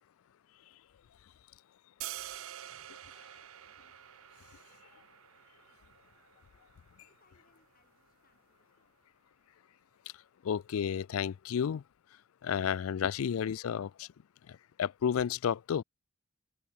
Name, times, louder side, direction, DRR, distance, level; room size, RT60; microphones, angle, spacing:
sound 1, 2.0-8.1, right 12 dB, 80° right, 0.6 m, -48 dB
voice 1, 6.8-9.0, left 3 dB, 45° left, 7.5 m, -72 dB
voice 2, 10.4-11.8 12.4-14.1 14.5-15.8, left 8 dB, 85° left, 0.4 m, -32 dB
head